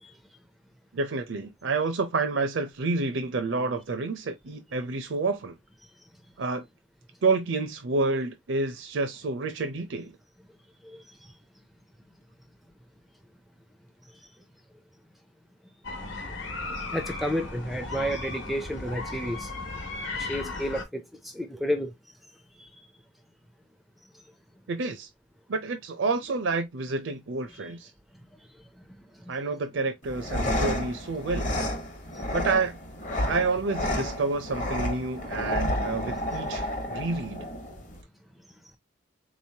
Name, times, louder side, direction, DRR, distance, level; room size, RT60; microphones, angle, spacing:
voice 1, 0.9-5.6 6.4-6.6 7.2-10.2 24.7-25.1 25.5-27.9 29.3-31.5 32.3-32.8 33.2-37.4, right 3 dB, 70° right, 0.5 m, -29 dB
sound 1, 15.8-20.8, left 3 dB, 70° left, 1.1 m, -36 dB
voice 2, 16.9-19.5 20.1-21.9 22.6-22.7 27.5-27.6 32.1-32.2, equal, ahead, 0.4 m, -31 dB
sound 2, 30.0-38.0, left 1 dB, 40° left, 0.9 m, -31 dB
3.8 x 3.1 x 2.7 m
head